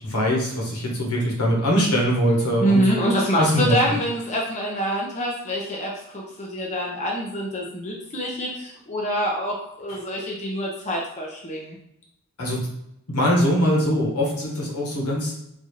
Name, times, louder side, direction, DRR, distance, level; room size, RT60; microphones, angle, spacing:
voice 1, 0.0-2.8 3.4-4.0 9.9-10.0 12.4-12.6 13.1-15.3, equal, 90° left, -2 dB, 1.1 m, -22 dB
voice 2, 2.6-11.8, equal, 30° left, -2 dB, 0.6 m, -25 dB
4.0 x 2.4 x 3.1 m, 0.79 s
head